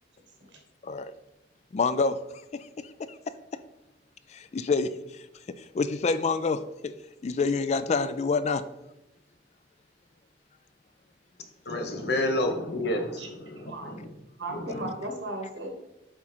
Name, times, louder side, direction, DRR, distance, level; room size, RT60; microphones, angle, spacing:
voice 1, 0.8-1.1 1.7-2.2 2.5-3.6 4.3-5.2 5.5-6.9 7.2-8.6, left 4 dB, 40° left, 0.3 m, -28 dB
voice 2, 11.7-14.1 14.5-14.9, left 1 dB, 65° left, 1.0 m, -30 dB
voice 3, 14.4-15.8, right 1 dB, 90° right, 1.6 m, -36 dB
8.1 x 3.7 x 4.4 m
head